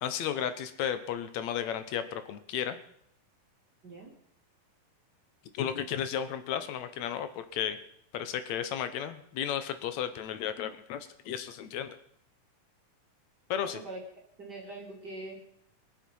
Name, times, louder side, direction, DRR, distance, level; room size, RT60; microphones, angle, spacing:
voice 1, 0.0-2.8 5.5-7.8 8.1-12.0 13.5-13.8, left 9 dB, 70° left, 11 dB, 1.9 m, -33 dB
voice 2, 13.6-14.0 14.4-15.4, right 2 dB, 30° right, -3 dB, 2.8 m, -42 dB
23.0 x 7.6 x 5.4 m, 0.69 s
omnidirectional pair, 3.9 m